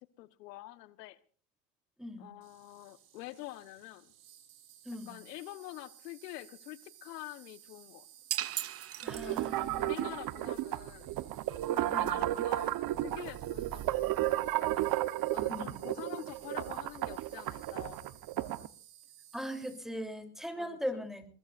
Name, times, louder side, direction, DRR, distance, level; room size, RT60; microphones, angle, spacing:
voice 1, 0.2-1.2 2.2-4.1 5.1-8.1 9.2-9.4 9.8-11.1 11.7-14.8 15.3-18.1 20.5-21.1, left 17 dB, 80° left, 13 dB, 1.4 m, -47 dB
Insect, 2.4-19.8, right 11 dB, 65° right, 6.2 m, -57 dB
voice 2, 4.9-5.2 9.0-10.1 11.9-12.2 15.5-15.8 19.3-21.3, equal, ahead, 8 dB, 3.4 m, -40 dB
sound 1, 8.3-9.8, right 12 dB, 30° right, 0.8 m, -37 dB
sound 2, 9.1-18.7, right 15 dB, 45° right, 1.1 m, -33 dB
22.5 x 20.0 x 2.6 m, 0.43 s
supercardioid pair, 105°, 48 cm